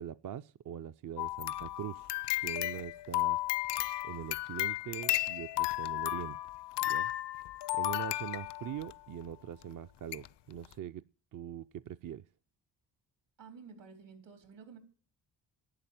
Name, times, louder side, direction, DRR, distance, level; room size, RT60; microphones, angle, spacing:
voice 1, 0.0-2.1 2.4-3.4 4.0-6.4 6.8-7.1 7.7-11.1 11.3-12.3, right 10 dB, 50° right, 0.5 m, -42 dB
sound 1, 1.2-8.9 9.6-9.7 10.1-10.3 10.6-10.7, left 15 dB, 70° left, 0.6 m, -34 dB
voice 2, 13.4-14.8, right 5 dB, 80° right, 4.1 m, -52 dB
11.5 x 8.6 x 9.0 m
cardioid pair, 70°, 43 cm